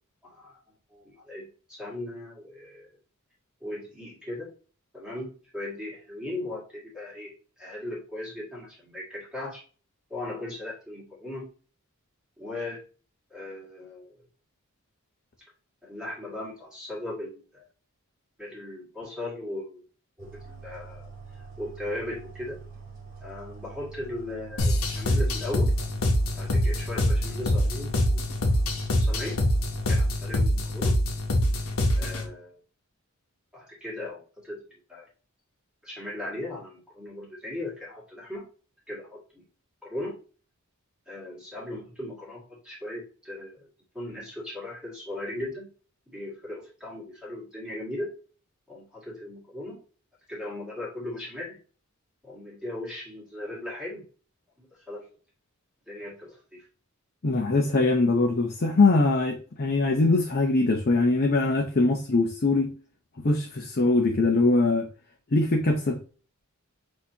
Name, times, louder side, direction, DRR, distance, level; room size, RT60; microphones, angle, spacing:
voice 1, 0.2-0.6 0.9-2.9 3.6-4.5 4.9-9.6 10.1-11.5 12.4-12.8 13.3-14.2 15.8-17.6 18.4-19.8 20.2-21.1 21.6-22.6 23.2-25.7 26.3-28.4 29.0-29.4 29.9-31.0 32.0-32.6 33.5-35.1 35.8-38.4 38.9-39.4 39.8-40.2 41.1-43.7 43.9-45.7 46.1-48.1 48.7-49.8 50.3-51.6 52.2-54.0 54.6-55.1 55.9-56.7, left 1 dB, 5° right, 1.9 m, -38 dB
sound 1, 20.2-30.1, right 5 dB, 40° right, 1.3 m, -45 dB
sound 2, 24.6-32.2, left 1 dB, 75° left, 1.0 m, -24 dB
voice 2, 57.2-62.7 63.2-64.9 65.3-66.0, left 3 dB, 45° left, 0.6 m, -22 dB
6.4 x 2.8 x 2.8 m
head